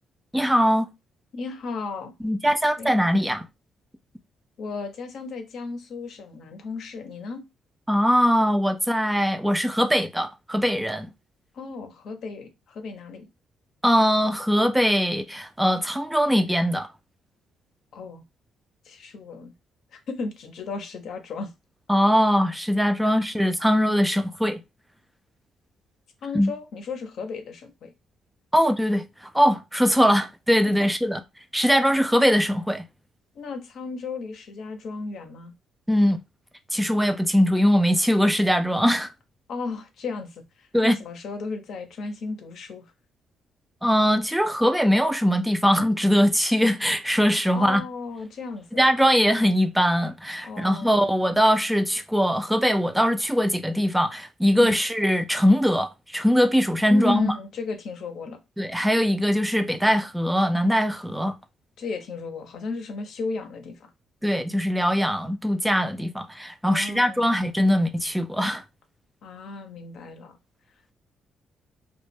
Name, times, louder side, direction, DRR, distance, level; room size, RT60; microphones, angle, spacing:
voice 1, 0.3-0.9 2.2-3.5 7.9-11.1 13.8-16.9 21.9-24.6 26.3-26.5 28.5-31.2 31.5-32.8 35.9-36.2 36.7-39.1 40.7-41.0 43.8-47.8 48.8-57.3 58.6-61.4 64.2-68.6, equal, 5° right, 0.3 m, -21 dB
voice 2, 1.3-2.1 2.8-2.9 4.6-7.4 11.5-13.3 17.9-18.2 18.8-19.5 19.9-21.5 23.0-23.2 26.2-27.9 30.7-30.9 33.3-35.5 39.5-42.9 47.5-48.9 50.4-50.9 54.6-54.8 56.9-58.4 61.8-63.9 66.7-67.3 69.2-70.4, left 4 dB, 70° left, 0.6 m, -34 dB
2.1 x 2.1 x 3.2 m
cardioid pair, 90°, 0 cm